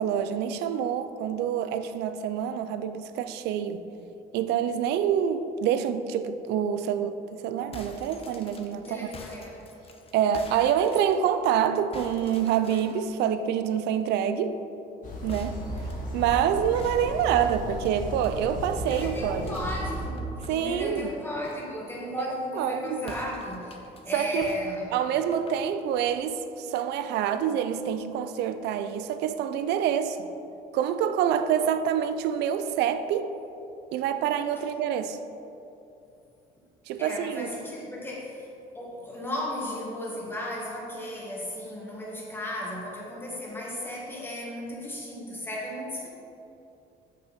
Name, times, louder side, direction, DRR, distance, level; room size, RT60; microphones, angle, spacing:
voice 1, 0.0-3.8 4.3-9.1 10.1-14.6 15.2-15.7 16.1-19.5 20.5-21.1 22.2-23.1 24.1-24.6 24.9-30.3 30.7-33.4 33.9-35.2 36.9-37.5, right 9 dB, 80° right, 0.5 m, -27 dB
sound 1, 7.5-11.6 11.9-13.1 15.3-18.3 18.9-21.7 23.0-24.0 24.4-26.2, left 3 dB, 35° left, 0.8 m, -47 dB
voice 2, 8.8-9.7 18.9-23.8 24.0-24.9 34.6-34.7 37.0-38.5 38.7-46.1, left 1 dB, 15° left, 1.8 m, -35 dB
sound 2, 15.0-20.1, equal, 50° left, 1.6 m, -35 dB
6.3 x 5.7 x 5.1 m
cardioid pair, 110°, 17 cm